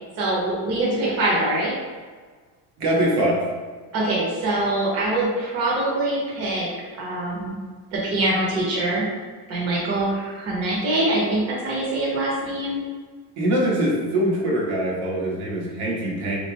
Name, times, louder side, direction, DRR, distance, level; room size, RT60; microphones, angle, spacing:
voice 1, 0.2-1.7 3.9-6.7 6.9-7.5 7.9-9.0 9.5-12.8, right 1 dB, 40° right, -5 dB, 0.9 m, -24 dB
voice 2, 2.8-3.4 13.4-16.4, right 1 dB, 85° right, -4 dB, 1.3 m, -23 dB
3.8 x 3.3 x 2.8 m, 1.5 s
cardioid pair, 180°, 37 cm